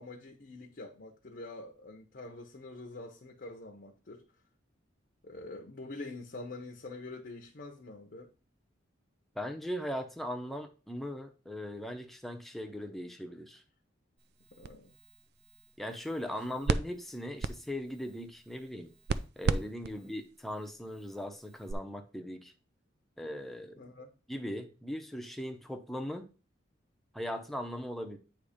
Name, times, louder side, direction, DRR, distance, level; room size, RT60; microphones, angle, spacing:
voice 1, 0.0-4.3 5.2-8.3 14.5-14.9 19.9-20.1 23.8-24.1, left 2 dB, 50° left, 0.8 m, -46 dB
voice 2, 9.3-13.6 15.8-18.9 19.4-22.5 23.2-23.8 24.3-26.3 27.1-28.2, equal, ahead, 0.7 m, -39 dB
sound 1, 14.2-21.7, right 4 dB, 55° right, 0.4 m, -38 dB
8.5 x 3.1 x 5.0 m
head